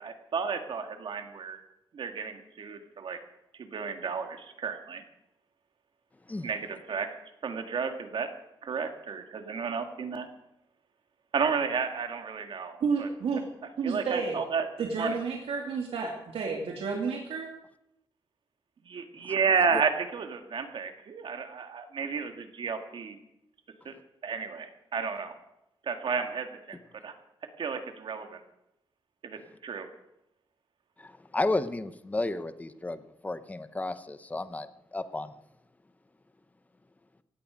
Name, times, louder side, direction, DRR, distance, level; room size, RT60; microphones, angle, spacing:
voice 1, 0.0-1.6 1.9-3.2 3.6-5.0 6.4-7.1 7.4-8.3 8.6-10.3 11.3-13.1 13.8-14.7 15.0-15.1 18.9-23.2 23.9-24.0 24.2-25.3 25.9-26.8 27.0-27.1 27.6-28.4 29.2-29.9, right 5 dB, 60° right, 6 dB, 2.0 m, -32 dB
voice 2, 12.8-13.4 13.8-14.4 14.8-17.5, right 5 dB, 85° right, 0 dB, 2.4 m, -31 dB
voice 3, 31.0-35.3, left 2 dB, 15° left, 12 dB, 0.9 m, -33 dB
17.0 x 16.5 x 5.2 m, 0.85 s
wide cardioid pair, 135°, 9 cm